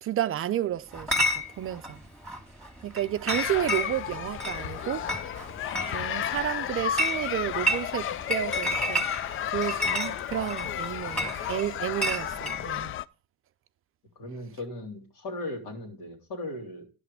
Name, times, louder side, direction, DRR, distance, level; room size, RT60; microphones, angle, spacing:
voice 1, 0.0-1.1 1.6-2.0 2.8-5.1 5.8-9.1 9.5-12.9, right 12 dB, 40° right, 0.5 m, -31 dB
Chatter / Chink clink, 0.9-12.6, left 1 dB, 5° left, 2.0 m, -32 dB
sound 1, 3.3-13.1, left 11 dB, 40° left, 0.4 m, -33 dB
voice 2, 14.2-16.8, left 1 dB, 70° left, 2.8 m, -37 dB
11.0 x 5.8 x 4.8 m
supercardioid pair, 95°, 33 cm